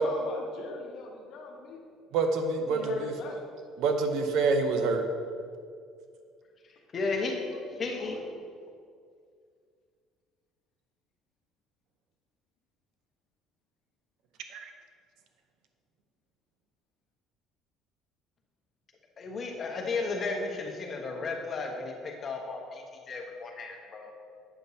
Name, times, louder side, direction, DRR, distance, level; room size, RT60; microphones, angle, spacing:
voice 1, 0.0-1.8 2.7-3.4 8.0-8.2, left 3 dB, 60° left, 1 dB, 1.1 m, -41 dB
voice 2, 2.1-3.1 3.8-5.0 14.5-14.7, right 4 dB, 70° right, 6 dB, 0.7 m, -27 dB
voice 3, 6.9-7.4 7.8-8.2 19.2-24.1, left 3 dB, 35° left, 1 dB, 1.1 m, -34 dB
8.1 x 6.5 x 2.8 m, 2.2 s
cardioid pair, 110°, 0 cm